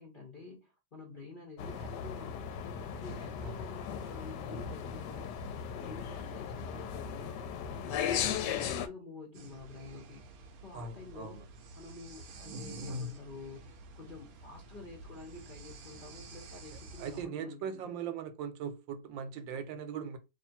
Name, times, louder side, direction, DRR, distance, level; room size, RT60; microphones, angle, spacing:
voice 1, 0.0-2.6 2.9-5.4 5.7-11.5 11.8-13.6 13.9-17.9, left 3 dB, 50° left, 0.6 m, -49 dB
sound 1, 1.6-8.9, left 8 dB, 75° left, 1.1 m, -37 dB
sound 2, 9.3-17.2, equal, 65° right, 1.0 m, -47 dB
voice 2, 10.7-11.4 17.0-20.2, right 7 dB, 80° right, 1.4 m, -40 dB
2.8 x 2.6 x 4.3 m
omnidirectional pair, 2.0 m